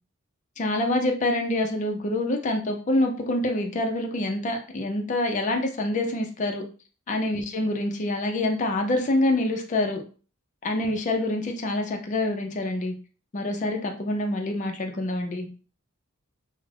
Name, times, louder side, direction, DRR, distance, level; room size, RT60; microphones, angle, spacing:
voice 1, 0.6-6.6 7.1-10.0 10.6-12.9 13.3-15.5, left 1 dB, 35° left, 3 dB, 0.4 m, -26 dB
2.3 x 2.0 x 3.2 m, 0.39 s
head